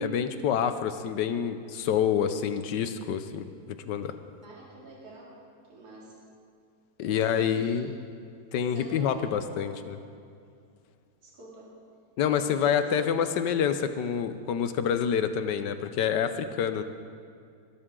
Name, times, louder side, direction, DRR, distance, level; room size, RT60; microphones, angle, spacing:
voice 1, 0.0-3.5 3.9-4.1 7.0-7.9 8.5-10.0 12.2-16.8, left 8 dB, 90° left, 10 dB, 1.4 m, -27 dB
voice 2, 4.4-5.4 5.7-6.1 7.0-7.8 8.7-9.1 9.5-10.0 11.2-11.7 12.3-12.9 13.2-13.3, right 2 dB, 60° right, -6 dB, 3.2 m, -46 dB
22.5 x 12.5 x 3.8 m, 2.4 s
omnidirectional pair, 1.8 m